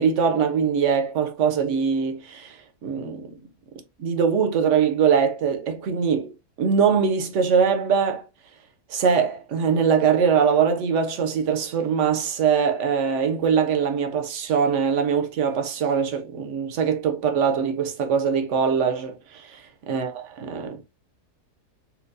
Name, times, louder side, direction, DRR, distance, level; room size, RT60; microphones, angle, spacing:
voice 1, 0.0-3.4 4.0-6.3 6.6-8.3 8.9-19.6 19.9-20.9, right 6 dB, 65° right, 0.8 m, -22 dB
4.3 x 2.2 x 2.5 m
omnidirectional pair, 1.7 m